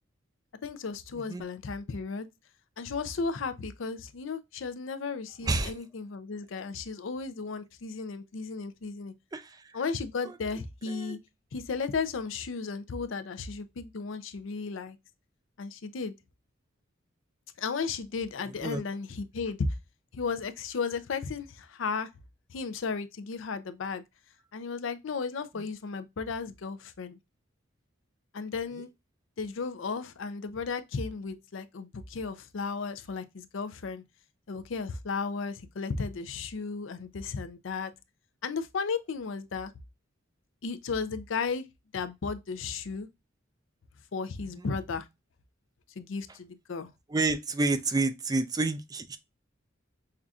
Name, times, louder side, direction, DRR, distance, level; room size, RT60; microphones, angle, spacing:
voice 1, 0.6-2.3 2.8-9.1 9.7-11.2 11.5-15.0 15.6-16.1 17.6-19.7 20.1-22.1 22.5-24.0 24.5-27.2 28.3-28.9 29.4-34.0 34.5-37.9 38.4-39.7 40.6-41.7 41.9-43.1 44.1-45.1 46.0-46.9, left 5 dB, 70° left, 0.5 m, -34 dB
voice 2, 5.4-5.7 9.3-9.8 10.2-10.4 10.9-11.2 18.6-18.8 44.5-44.7 47.1-49.2, right 3 dB, 20° right, 0.3 m, -29 dB
5.5 x 2.5 x 2.3 m
head